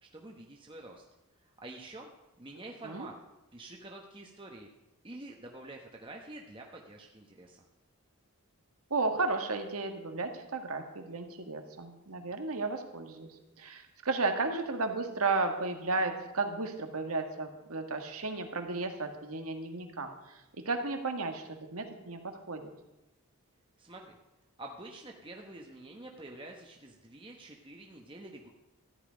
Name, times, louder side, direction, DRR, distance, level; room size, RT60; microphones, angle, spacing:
voice 1, 0.1-1.0 1.4-2.1 2.4-3.1 3.5-4.7 5.0-7.6 23.8-24.2 24.6-28.5, right 2 dB, 20° right, 1 dB, 1.0 m, -47 dB
voice 2, 8.9-22.7, right 3 dB, 80° right, 5 dB, 1.7 m, -34 dB
14.0 x 11.0 x 5.1 m, 0.97 s
head